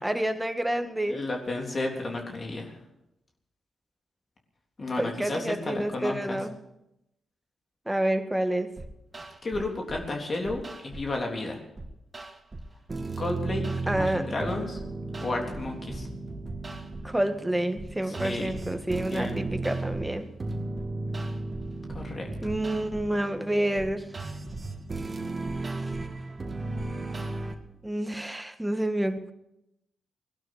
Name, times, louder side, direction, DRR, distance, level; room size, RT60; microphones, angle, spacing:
voice 1, 0.0-1.2 5.0-6.5 7.9-8.7 13.9-14.3 17.0-20.3 22.4-24.1 27.8-29.3, right 1 dB, 10° right, 8 dB, 1.9 m, -28 dB
voice 2, 1.1-2.7 4.8-6.4 9.4-11.6 13.2-14.8 15.2-16.1 18.1-18.5 19.1-19.4 21.9-22.2, left 2 dB, 45° left, 1 dB, 3.5 m, -32 dB
sound 1, 8.8-10.1 10.5-11.2 11.8-27.5, right 3 dB, 35° right, 2.1 m, -35 dB
18.0 x 12.0 x 6.7 m, 0.87 s
hypercardioid pair, 40°, 0 cm